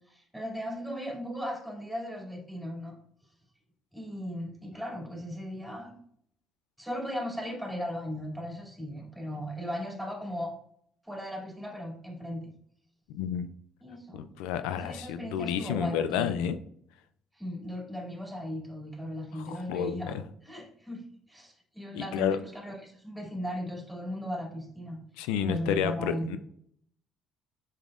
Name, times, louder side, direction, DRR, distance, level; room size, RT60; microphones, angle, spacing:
voice 1, 0.1-2.9 3.9-5.9 6.8-10.5 11.0-12.5 13.8-14.3 14.7-16.3 17.3-20.2 20.4-21.0 21.3-25.0 25.4-26.4, equal, ahead, -2 dB, 2.6 m, -37 dB
voice 2, 13.1-13.5 14.1-16.6 19.3-20.0 21.9-22.4 25.2-26.4, left 8 dB, 85° left, 10 dB, 0.3 m, -30 dB
6.9 x 5.4 x 2.5 m, 0.67 s
supercardioid pair, 75°, 0 cm